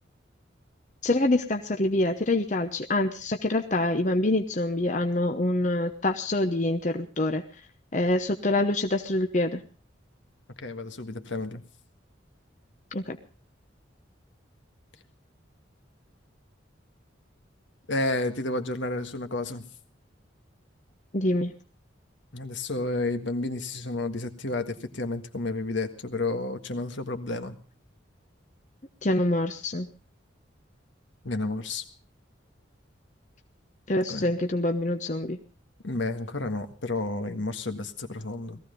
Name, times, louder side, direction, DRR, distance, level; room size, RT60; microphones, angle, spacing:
voice 1, 1.0-7.4 7.9-9.6 12.9-13.2 21.1-21.5 29.0-29.9 33.9-35.4, left 2 dB, 40° left, 5 dB, 1.0 m, -26 dB
voice 2, 10.6-11.6 17.9-19.6 22.3-27.5 31.2-31.8 34.1-34.3 35.8-38.6, left 2 dB, 70° left, 7 dB, 1.7 m, -31 dB
18.5 x 15.0 x 5.2 m, 0.38 s
head